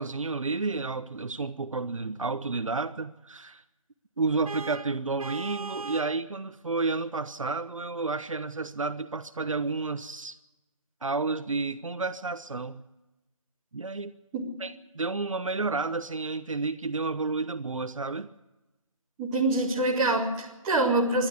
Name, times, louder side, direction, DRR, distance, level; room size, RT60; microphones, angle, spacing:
voice 1, 0.0-3.6 4.2-10.4 11.0-12.8 13.7-14.1 14.6-18.3, right 3 dB, 65° right, 11 dB, 1.1 m, -31 dB
Vehicle horn car horn honking, 4.4-6.2, right 4 dB, 90° right, 0.9 m, -38 dB
voice 2, 19.2-21.3, right 2 dB, 10° right, -5 dB, 2.5 m, -25 dB
27.5 x 12.0 x 8.5 m, 1.0 s
figure-of-eight pair, 170°, 18 cm